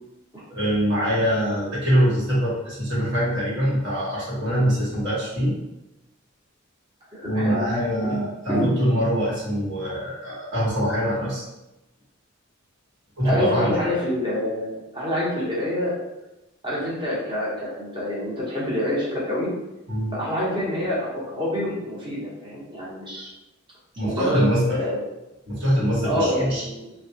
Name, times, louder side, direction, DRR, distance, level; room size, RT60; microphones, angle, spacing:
voice 1, 0.5-5.6 7.2-11.4 13.2-13.9 19.9-20.1 23.9-24.6 25.5-26.6, equal, 60° right, -7 dB, 1.2 m, -23 dB
voice 2, 7.1-7.6 8.0-8.1 8.5-8.7 13.2-16.0 16.6-19.5 20.1-23.3 24.0-25.0 26.0-26.9, left 1 dB, 25° right, -6 dB, 1.0 m, -27 dB
3.3 x 2.2 x 2.8 m, 0.96 s
head